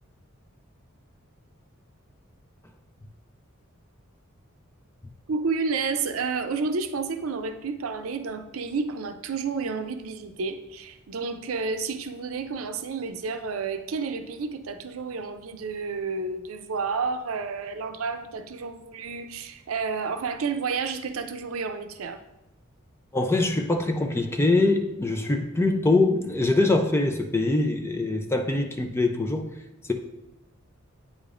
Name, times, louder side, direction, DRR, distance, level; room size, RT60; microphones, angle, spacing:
voice 1, 5.3-22.2, right 4 dB, 80° right, 7 dB, 0.5 m, -30 dB
voice 2, 23.1-29.5, left 2 dB, 10° left, 5 dB, 0.5 m, -23 dB
8.7 x 5.0 x 2.5 m, 0.91 s
head